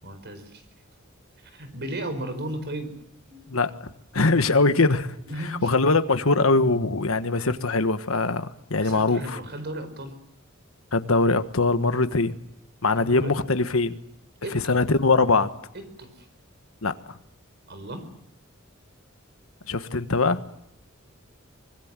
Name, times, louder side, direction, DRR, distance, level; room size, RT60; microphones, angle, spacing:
voice 1, 0.0-0.6 1.4-2.9 3.3-3.4 5.3-5.7 8.8-10.1 13.0-13.4 14.4-14.8 15.7-16.3 17.7-18.1, right 1 dB, 55° right, 10 dB, 4.7 m, -35 dB
voice 2, 3.5-5.1 5.6-9.4 10.9-12.3 12.8-14.0 14.7-15.5 16.8-17.2 19.7-20.4, left 3 dB, 75° left, 11 dB, 1.4 m, -22 dB
24.5 x 21.5 x 7.5 m, 0.79 s
head